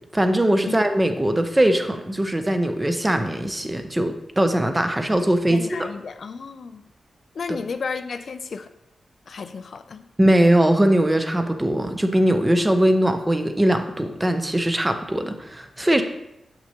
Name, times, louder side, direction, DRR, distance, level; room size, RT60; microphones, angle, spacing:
voice 1, 0.1-5.9 10.2-16.0, right 1 dB, 15° right, 7 dB, 0.6 m, -20 dB
voice 2, 5.5-6.9 7.3-8.7 9.3-10.0, left 5 dB, 65° left, 9 dB, 0.4 m, -33 dB
6.5 x 5.9 x 2.8 m, 0.86 s
cardioid pair, 80°, 0 cm